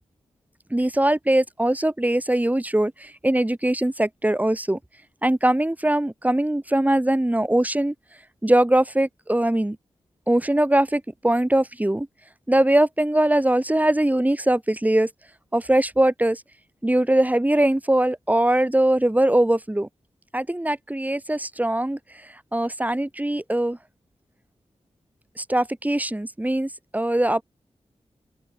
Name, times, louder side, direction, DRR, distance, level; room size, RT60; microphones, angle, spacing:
voice 1, 0.7-4.8 5.2-7.9 8.4-9.8 10.3-12.1 12.5-15.1 15.5-16.4 16.8-19.9 20.3-22.0 22.5-23.8 25.4-27.4, right 1 dB, 15° right, 3.2 m, -21 dB
open air
wide cardioid pair, 75°, 12 cm